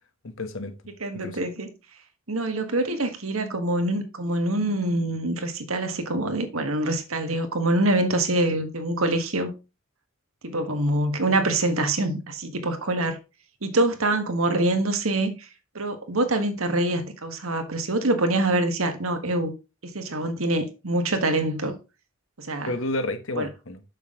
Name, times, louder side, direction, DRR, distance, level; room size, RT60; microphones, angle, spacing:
voice 1, 0.2-0.7 1.1-1.5 22.6-23.8, left 2 dB, 70° left, 1.2 m, -31 dB
voice 2, 1.0-1.7 2.3-9.5 10.4-13.2 13.6-15.5 15.8-19.5 19.8-21.8 22.4-22.7 23.4-23.5, right 2 dB, 80° right, 1.6 m, -25 dB
7.0 x 6.4 x 3.7 m
head